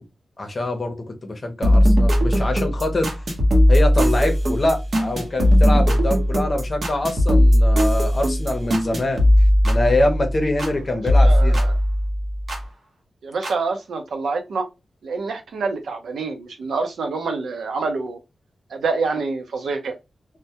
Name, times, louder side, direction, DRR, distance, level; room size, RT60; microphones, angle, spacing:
voice 1, 0.4-3.1 3.7-9.3 9.6-11.6, left 2 dB, 35° left, 0.7 m, -24 dB
sound 1, 1.6-10.8 11.1-12.6 13.4-13.5, equal, 50° right, 0.8 m, -18 dB
voice 2, 11.1-11.7 13.2-14.7 15.0-18.2 18.7-20.0, right 4 dB, 90° right, 0.6 m, -26 dB
2.2 x 2.1 x 2.7 m
wide cardioid pair, 120°, 0 cm